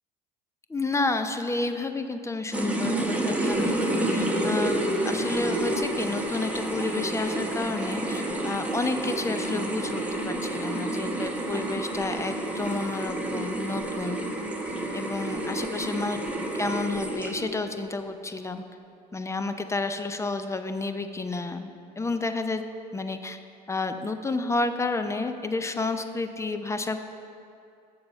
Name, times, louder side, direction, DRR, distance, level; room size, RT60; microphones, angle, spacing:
voice 1, 0.7-14.2 14.9-16.2 16.6-18.6 19.1-21.7 22.0-22.6 22.9-23.4 23.7-27.0, left 3 dB, 15° left, 8 dB, 0.6 m, -30 dB
sound 1, 2.5-17.6, right 1 dB, 5° right, 1.1 m, -29 dB
7.7 x 7.0 x 5.5 m, 2.5 s
hypercardioid pair, 65°, 21 cm